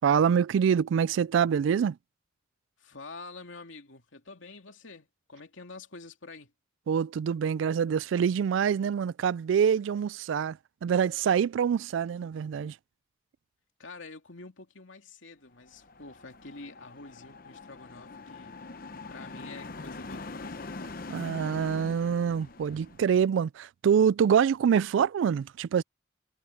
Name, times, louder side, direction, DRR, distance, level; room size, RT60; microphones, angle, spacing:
voice 1, 0.0-2.0 6.9-12.8 21.1-25.8, right 7 dB, 75° right, 0.3 m, -25 dB
voice 2, 2.8-6.5 13.8-18.6 19.1-20.6, left 3 dB, 80° left, 2.7 m, -47 dB
sound 1, 15.7-23.1, left 3 dB, 45° left, 0.8 m, -43 dB
head